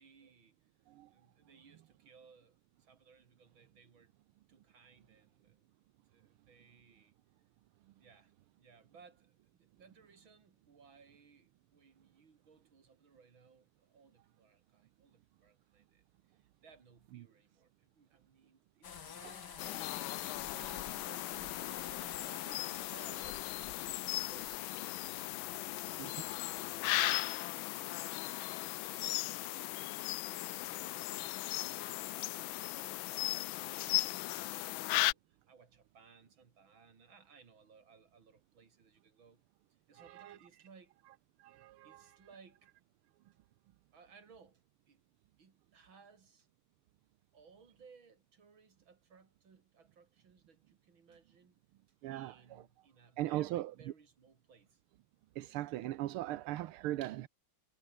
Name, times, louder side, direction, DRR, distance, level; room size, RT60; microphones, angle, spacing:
voice 1, 0.0-0.7 1.1-4.1 4.5-5.7 6.1-7.1 7.9-20.0 20.4-26.1 26.3-32.3 33.0-39.4 39.9-41.0 41.8-42.7 43.9-45.0 45.4-46.5 47.3-51.6 52.1-54.8, right 5 dB, 65° right, 3.7 m, -62 dB
sound 1, 18.8-27.2, left 7 dB, 55° left, 2.2 m, -50 dB
sound 2, 19.6-35.1, left 18 dB, 75° left, 1.3 m, -37 dB
voice 2, 40.0-40.4 41.4-42.0 52.0-52.6 53.2-53.7 55.4-57.3, right 15 dB, 85° right, 1.7 m, -39 dB
omnidirectional pair, 2.3 m